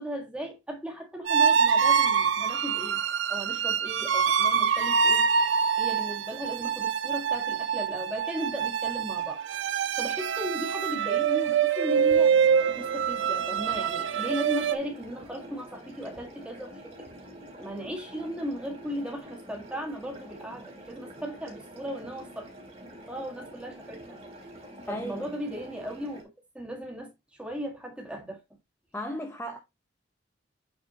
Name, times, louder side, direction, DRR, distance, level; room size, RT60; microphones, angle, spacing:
voice 1, 0.0-3.0 3.3-5.2 5.8-9.4 10.0-12.4 12.8-17.1 17.6-22.5 23.1-24.2 24.8-26.2 26.5-28.4, equal, 5° right, 1.6 m, -36 dB
sound 1, 1.3-14.8, right 7 dB, 70° right, 0.6 m, -25 dB
sound 2, 11.9-26.2, right 1 dB, 30° right, 2.4 m, -46 dB
voice 2, 24.9-25.3 28.9-29.6, equal, 10° left, 0.7 m, -35 dB
8.3 x 4.2 x 2.8 m
head